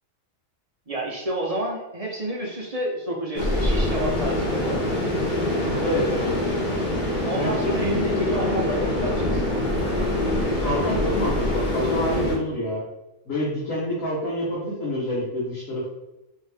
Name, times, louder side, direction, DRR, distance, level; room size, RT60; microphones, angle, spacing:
voice 1, 0.9-4.8 7.2-9.5, right 1 dB, 40° right, -2 dB, 0.6 m, -30 dB
sound 1, 3.3-12.4, left 1 dB, 40° left, 1.1 m, -24 dB
voice 2, 5.8-6.4 7.3-8.6 10.6-12.8 13.3-15.9, equal, 75° left, -7 dB, 1.5 m, -27 dB
4.2 x 2.7 x 3.4 m, 0.96 s
omnidirectional pair, 1.4 m